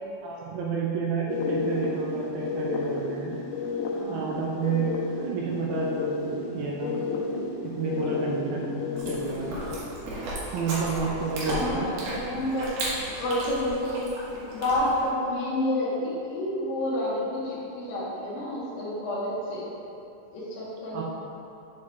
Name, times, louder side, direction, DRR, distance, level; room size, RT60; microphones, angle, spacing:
voice 1, 0.2-3.4 4.1-4.9 5.2-7.0 7.6-9.6 10.5-11.9 20.9-21.0, right 5 dB, 85° right, -3 dB, 2.1 m, -30 dB
sound 1, 1.3-9.8, left 3 dB, 90° left, 2.2 m, -31 dB
voice 2, 3.9-4.3 6.9-7.3 10.9-11.1 11.5-12.7 13.2-14.0 14.3-19.7 20.3-21.0, left 1 dB, 70° left, -9 dB, 2.4 m, -29 dB
Chewing mastication, 9.0-15.1, right 1 dB, 70° right, 3.1 m, -35 dB
7.0 x 4.8 x 4.1 m, 2.8 s
omnidirectional pair, 4.9 m